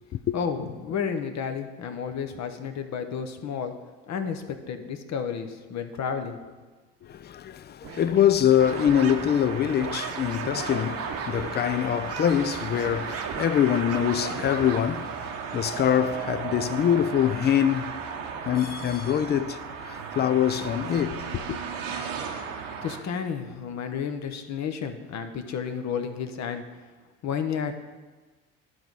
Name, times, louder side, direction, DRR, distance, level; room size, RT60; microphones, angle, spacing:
voice 1, 0.3-3.7 4.1-6.4 22.8-26.6 27.2-27.7, left 7 dB, 45° left, 0.9 m, -31 dB
voice 2, 7.0-18.0 18.4-21.6, left 10 dB, 30° left, 0.4 m, -24 dB
sound 1, 7.8-11.6 12.1-14.9, right 7 dB, 40° right, 0.9 m, -37 dB
sound 2, 8.6-23.0, right 6 dB, 80° right, 1.0 m, -35 dB
11.5 x 3.9 x 4.8 m
hypercardioid pair, 65°, 37 cm